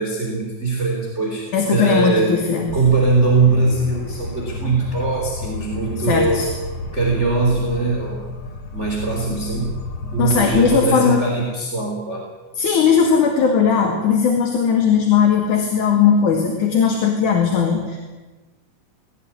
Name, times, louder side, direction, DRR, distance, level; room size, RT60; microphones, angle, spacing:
voice 1, 0.0-2.4 2.7-6.4 6.9-8.2 8.7-12.2, right 3 dB, 20° right, -1 dB, 4.0 m, -21 dB
voice 2, 1.5-2.8 6.0-6.5 10.2-11.2 12.6-18.0, left 6 dB, 65° left, 2 dB, 3.7 m, -18 dB
sound 1, 2.7-10.8, left 3 dB, 40° left, 3.1 m, -31 dB
20.5 x 18.0 x 9.8 m, 1.2 s
omnidirectional pair, 3.9 m